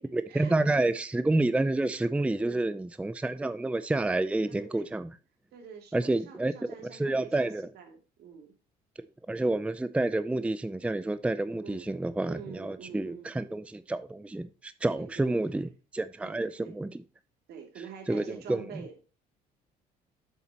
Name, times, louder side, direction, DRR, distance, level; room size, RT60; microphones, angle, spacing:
voice 1, 0.1-5.1 5.9-7.7 9.3-17.0 18.1-18.7, right 2 dB, 5° right, 0.5 m, -29 dB
voice 2, 2.4-2.7 4.5-4.9 5.5-8.5 11.6-11.9 12.3-13.3 14.9-15.5 16.2-16.8 17.5-19.0, right 7 dB, 70° right, 2.7 m, -47 dB
8.3 x 7.2 x 2.9 m
cardioid pair, 110°, 17 cm